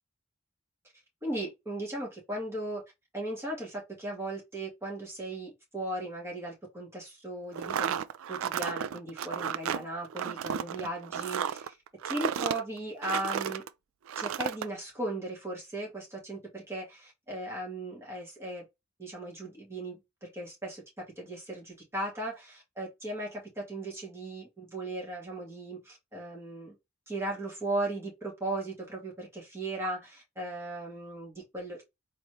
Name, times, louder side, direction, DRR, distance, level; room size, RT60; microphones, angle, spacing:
voice 1, 1.2-2.8 3.1-8.0 8.3-11.8 12.0-13.6 14.2-18.6 19.0-20.8 21.2-26.7 27.1-31.8, right 2 dB, 15° right, 2.1 m, -37 dB
sound 1, 7.5-13.7 14.1-14.7, right 8 dB, 80° right, 0.3 m, -33 dB
4.0 x 3.2 x 3.0 m
head